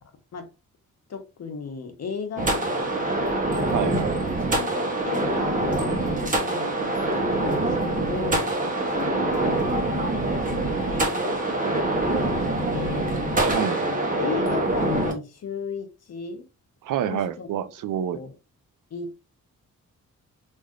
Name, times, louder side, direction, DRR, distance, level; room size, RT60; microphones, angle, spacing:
voice 1, 1.1-3.0 3.8-4.1 4.5-12.3 12.7-13.1 13.9-16.5 17.1-17.5 18.1-18.3 18.9-19.1, left 5 dB, 55° left, 0.8 m, -35 dB
sound 1, 2.4-15.1, right 2 dB, 25° right, 0.9 m, -25 dB
voice 2, 3.7-4.1 13.4-13.8 16.8-18.2, right 9 dB, 75° right, 0.5 m, -28 dB
3.2 x 2.6 x 2.3 m
cardioid pair, 85°, 32 cm